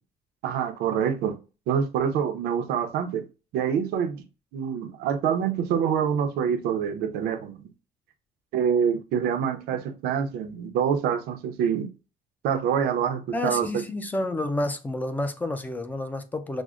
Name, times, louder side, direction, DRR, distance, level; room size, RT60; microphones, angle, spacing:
voice 1, 0.4-1.4 1.7-3.2 3.5-4.2 4.5-7.7 8.5-11.9 12.4-13.7, right 7 dB, 90° right, 0.7 m, -26 dB
voice 2, 13.3-16.6, left 1 dB, 10° left, 0.4 m, -29 dB
6.1 x 2.1 x 2.4 m
cardioid pair, 155°, 16 cm